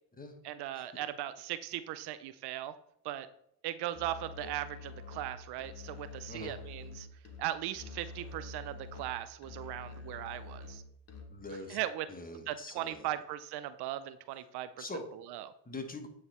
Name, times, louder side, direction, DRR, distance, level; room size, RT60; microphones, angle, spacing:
voice 1, 0.4-2.7 3.0-3.3 3.6-7.1 7.4-10.8 11.7-12.1 12.5-14.8 15.1-15.5, right 13 dB, 65° right, 13 dB, 0.5 m, -38 dB
Musical instrument, 3.9-11.5, left 3 dB, 35° left, 1.6 m, -47 dB
voice 2, 11.3-11.8 12.1-13.1 14.8-15.1 15.6-16.1, left 2 dB, 20° left, 5 dB, 1.3 m, -43 dB
9.4 x 3.4 x 4.1 m, 0.74 s
supercardioid pair, 65°, 43 cm